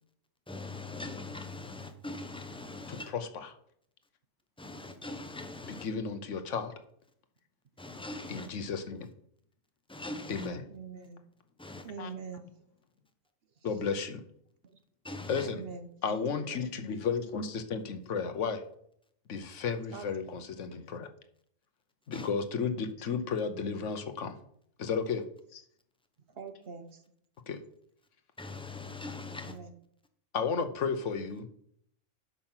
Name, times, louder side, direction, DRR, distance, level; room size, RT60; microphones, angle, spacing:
voice 1, 0.5-3.1 4.6-5.9 7.8-8.5 9.9-10.5 11.6-11.9 15.0-15.5 22.1-22.3 28.4-29.6, left 2 dB, 5° left, 0.7 m, -41 dB
voice 2, 2.9-3.5 5.7-6.7 8.3-9.1 10.3-10.6 12.0-12.1 13.6-14.2 15.3-15.6 16.0-18.6 19.3-21.1 22.1-24.4 24.8-25.2 25.5-25.6 27.5-27.6 30.3-31.5, left 5 dB, 70° left, 1.2 m, -33 dB
voice 3, 10.7-11.2 11.8-12.5 14.6-14.8 15.4-16.2 16.5-16.7 19.9-20.3 26.3-27.0 29.4-29.7, right 5 dB, 55° right, 1.0 m, -44 dB
8.8 x 5.8 x 5.7 m
omnidirectional pair, 1.3 m